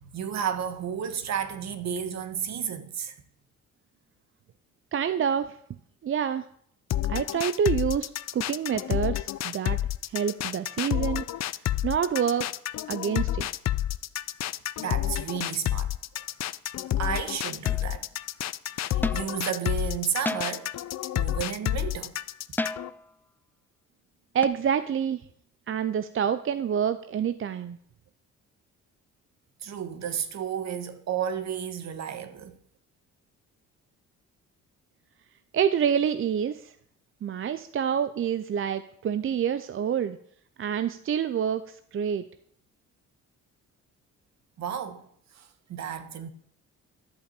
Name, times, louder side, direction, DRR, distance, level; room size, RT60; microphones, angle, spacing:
voice 1, 0.0-3.1 14.8-15.9 17.0-18.1 18.8-20.7 21.1-22.2 29.6-32.6 44.6-45.1 45.3-46.3, right 8 dB, 60° right, 1.4 m, -32 dB
voice 2, 4.9-5.6 6.0-6.4 7.1-9.8 10.1-11.2 11.8-12.5 12.9-13.5 24.3-25.2 25.7-27.8 35.5-36.7 37.2-40.2 40.6-42.2, right 8 dB, 45° right, 0.6 m, -27 dB
sound 1, 6.9-22.9, left 13 dB, 60° left, 0.6 m, -29 dB
sound 2, 17.6-18.0 19.0-19.4 20.3-20.8 22.6-23.1 24.4-24.5, left 2 dB, 5° left, 0.4 m, -32 dB
11.5 x 5.7 x 8.3 m
cardioid pair, 90°, 30 cm